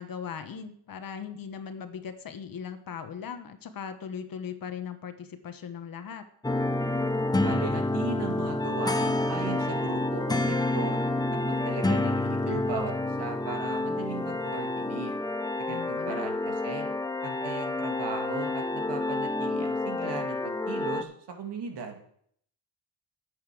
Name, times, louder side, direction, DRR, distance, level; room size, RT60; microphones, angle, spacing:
voice 1, 0.0-6.3 15.7-16.3, left 7 dB, 50° left, 9 dB, 1.3 m, -39 dB
sound 1, 6.4-21.0, left 2 dB, 10° left, 0.8 m, -29 dB
voice 2, 7.4-11.0 11.4-15.1 15.6-16.9 17.2-22.0, right 5 dB, 60° right, 3 dB, 2.6 m, -37 dB
11.5 x 8.2 x 6.2 m, 0.66 s
cardioid pair, 125°, 45 cm